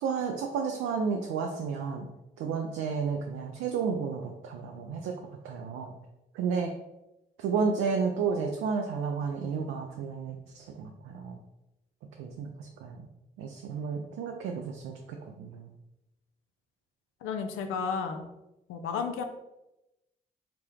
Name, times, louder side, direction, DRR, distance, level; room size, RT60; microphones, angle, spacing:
voice 1, 0.0-2.1 2.4-5.1 5.4-5.9 6.3-6.7 7.4-11.4 12.2-13.0 13.4-15.7, right 5 dB, 75° right, 2 dB, 0.4 m, -32 dB
voice 2, 17.2-18.2 18.7-19.2, left 5 dB, 75° left, 6 dB, 0.5 m, -32 dB
3.4 x 2.9 x 3.3 m, 0.94 s
hypercardioid pair, 40°, 21 cm